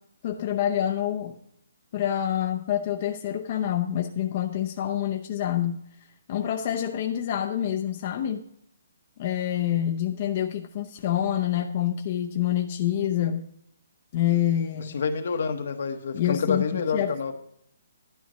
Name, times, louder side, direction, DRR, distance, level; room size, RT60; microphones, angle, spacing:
voice 1, 0.2-1.3 1.9-8.4 9.2-13.5 14.1-15.0 16.1-17.1, left 11 dB, 40° left, 3 dB, 0.7 m, -27 dB
voice 2, 14.9-17.3, left 5 dB, 60° left, 7 dB, 1.1 m, -28 dB
11.5 x 11.0 x 3.1 m, 0.72 s
hypercardioid pair, 160°, 0 cm